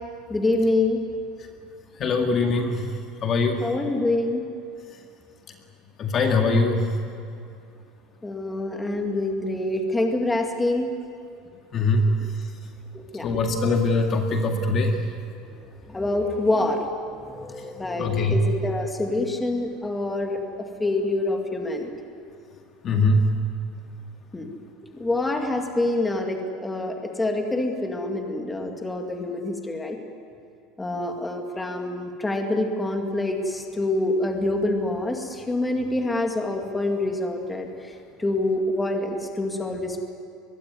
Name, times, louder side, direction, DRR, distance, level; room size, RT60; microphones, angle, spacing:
voice 1, 0.3-1.0 3.6-4.4 8.2-10.9 12.9-13.3 15.9-20.4 20.8-21.9 24.3-24.5 24.9-30.0 30.8-37.7 38.2-40.1, left 2 dB, 10° left, 2 dB, 2.2 m, -26 dB
voice 2, 2.0-2.8 3.2-3.6 6.0-6.9 11.7-12.1 13.2-15.0 18.0-18.4 22.8-23.2, left 3 dB, 30° left, 3 dB, 2.0 m, -22 dB
24.0 x 21.0 x 9.6 m, 2.6 s
cardioid pair, 165°, 0 cm